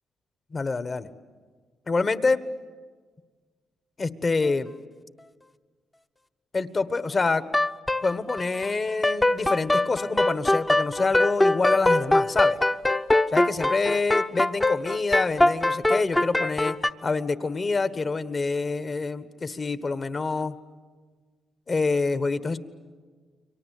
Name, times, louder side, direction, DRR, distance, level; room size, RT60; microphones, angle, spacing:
voice 1, 0.5-1.1 1.9-2.4 4.0-4.7 6.5-7.5 8.0-12.6 13.3-16.7 17.0-20.5 21.7-22.6, left 3 dB, 40° left, 12 dB, 1.4 m, -26 dB
sound 1, 7.5-8.7 9.0-16.9, left 2 dB, 15° left, 0.9 m, -22 dB
29.5 x 23.5 x 8.4 m, 1.5 s
cardioid pair, 75°, 0 cm